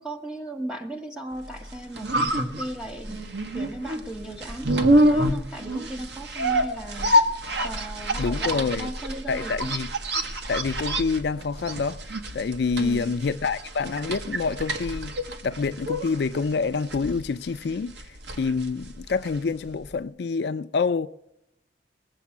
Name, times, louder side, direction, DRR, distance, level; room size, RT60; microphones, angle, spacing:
voice 1, 0.0-7.2 7.6-9.8 12.8-13.1, right 1 dB, 5° right, 1.5 m, -37 dB
sound 1, 1.6-19.6 19.9-20.0, equal, 70° right, 1.2 m, -27 dB
voice 2, 8.2-8.9 9.3-9.9 10.5-12.0 12.3-15.2 15.4-21.1, left 4 dB, 65° left, 0.4 m, -27 dB
20.0 x 7.4 x 7.1 m
head